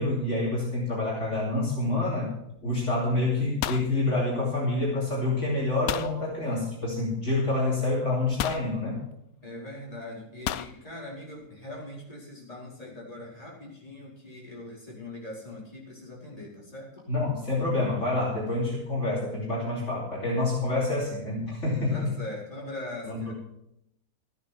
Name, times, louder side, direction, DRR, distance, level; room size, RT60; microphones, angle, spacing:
voice 1, 0.0-2.3 2.6-9.0 17.1-22.1 23.1-23.3, left 2 dB, 50° left, -5 dB, 3.6 m, -27 dB
sound 1, 2.6-3.0 3.3-4.8 5.9-6.2 7.3-7.4 8.4-8.7 10.5-10.8, left 12 dB, 75° left, 1.1 m, -33 dB
voice 2, 9.4-17.1 21.7-23.3, left 1 dB, 25° left, -4 dB, 4.8 m, -41 dB
14.0 x 9.2 x 6.1 m, 0.79 s
omnidirectional pair, 1.6 m